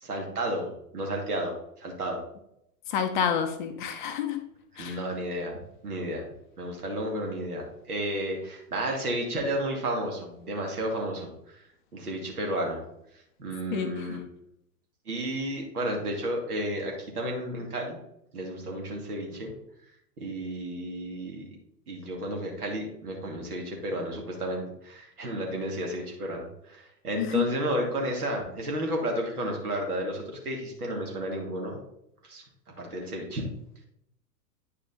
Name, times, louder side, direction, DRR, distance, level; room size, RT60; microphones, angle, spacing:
voice 1, 0.0-2.2 4.7-5.5 5.8-6.2 6.6-11.6 11.9-12.8 13.4-14.2 15.1-18.0 18.3-19.5 20.2-21.4 21.9-31.8 32.2-32.4 32.8-33.4, right 1 dB, 65° right, 1 dB, 2.6 m, -32 dB
voice 2, 2.9-4.4 4.8-5.0 13.7-14.2 27.2-27.4, left 8 dB, 30° left, 7 dB, 0.7 m, -29 dB
9.5 x 4.9 x 4.0 m, 0.76 s
figure-of-eight pair, 105°, 48 cm